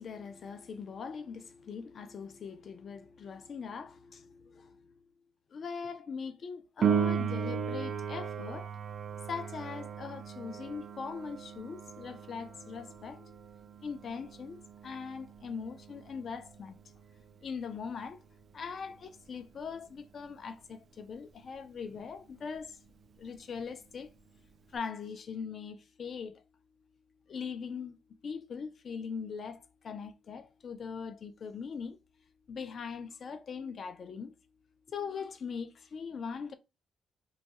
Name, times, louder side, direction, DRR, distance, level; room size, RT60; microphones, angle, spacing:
voice 1, 0.0-4.9 5.5-8.7 9.1-13.5 13.8-14.6 14.8-16.8 17.4-18.2 18.5-22.9 23.2-24.1 24.7-26.4 27.3-32.0 32.5-34.4 34.9-36.5, left 6 dB, 55° left, 0.5 m, -41 dB
Piano, 6.8-17.2 24.8-24.9, right 7 dB, 55° right, 0.3 m, -36 dB
2.6 x 2.3 x 4.1 m
cardioid pair, 90°, 0 cm